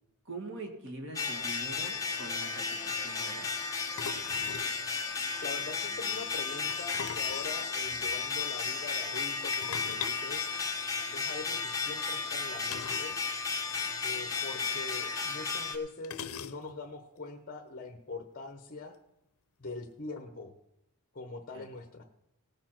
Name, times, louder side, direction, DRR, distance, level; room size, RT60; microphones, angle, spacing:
voice 1, 0.2-3.5 21.5-21.7, right 2 dB, 60° right, 3 dB, 2.2 m, -44 dB
sound 1, 1.1-15.8, left 5 dB, 15° left, 1.4 m, -34 dB
sound 2, 1.7-1.8 1.9-2.2 4.0-4.8 6.7-8.1 9.5-11.2 12.7-13.2 13.4-13.5 13.9-14.0 15.0-15.1 16.0-16.9, left 7 dB, 70° left, 0.6 m, -41 dB
voice 2, 5.4-10.4 11.1-13.2 14.0-18.9 19.6-20.5 21.1-22.0, left 3 dB, 40° left, 5 dB, 0.9 m, -43 dB
18.0 x 7.1 x 5.9 m, 0.87 s
head